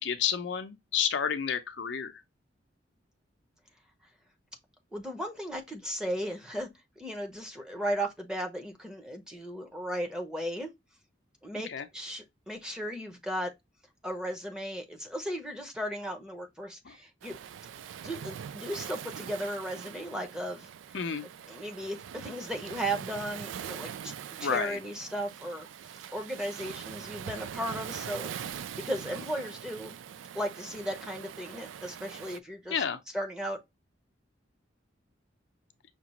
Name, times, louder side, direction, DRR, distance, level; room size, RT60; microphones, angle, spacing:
voice 1, 0.0-2.2 11.5-11.9 16.8-17.0 20.9-21.3 24.4-24.8 32.7-33.0, left 7 dB, 65° left, 0.5 m, -31 dB
voice 2, 4.9-6.7 7.0-10.7 11.4-13.5 14.0-17.4 18.0-20.7 21.5-24.1 24.4-25.7 26.1-28.5 28.8-29.9 30.3-32.7 33.1-33.6, equal, 5° right, 0.7 m, -36 dB
Waves surf, 17.2-32.4, right 8 dB, 75° right, 0.3 m, -42 dB
5.8 x 2.4 x 2.9 m
head